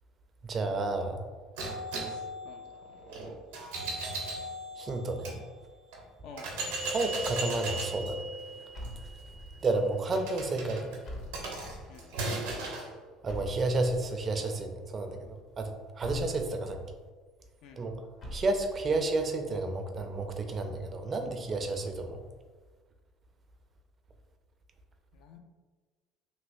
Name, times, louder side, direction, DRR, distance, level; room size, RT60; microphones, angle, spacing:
voice 1, 0.4-1.2 4.8-5.4 6.9-8.3 9.6-10.9 13.2-16.8 17.8-17.9 18.3-22.2, right 2 dB, 40° right, 5 dB, 0.4 m, -31 dB
sound 1, 1.6-5.4 5.9-6.0 6.4-12.9, right 2 dB, 80° right, 0.7 m, -37 dB
voice 2, 2.0-3.0 6.2-6.5 11.9-12.1 17.6-17.8 25.1-25.4, left 5 dB, 65° left, 5 dB, 0.4 m, -51 dB
sound 2, 8.7-9.7 11.0-12.0 13.3-14.2 16.0-16.9 18.2-19.0, equal, 50° left, 0.8 m, -43 dB
3.1 x 2.8 x 2.6 m, 1.4 s
hypercardioid pair, 70°, 0 cm